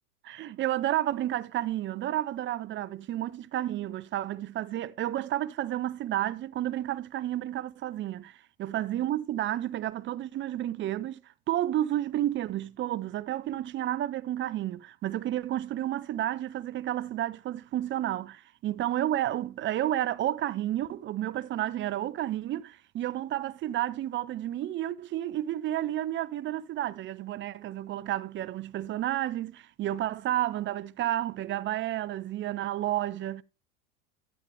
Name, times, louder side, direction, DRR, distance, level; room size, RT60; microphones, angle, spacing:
voice 1, 0.2-11.2 11.5-33.4, right 13 dB, 25° right, 0.6 m, -31 dB
12.5 x 8.3 x 3.3 m
hypercardioid pair, 95°, 43 cm